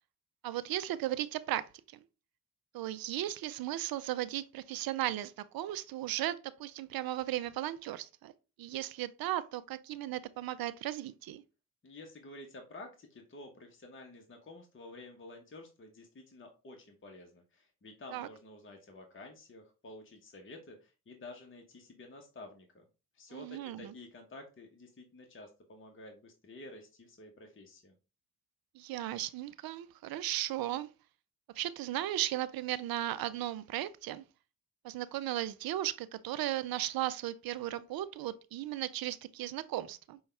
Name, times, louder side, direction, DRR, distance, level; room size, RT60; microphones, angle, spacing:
voice 1, 0.4-2.0 2.7-8.3 8.6-11.4 18.1-18.3 23.3-23.9 28.7-30.9 31.5-34.2 34.8-40.2, right 13 dB, 60° right, 0.5 m, -36 dB
voice 2, 11.8-22.8 23.1-27.9, left 2 dB, 30° left, 1.0 m, -51 dB
5.1 x 2.3 x 3.3 m
hypercardioid pair, 45°, 41 cm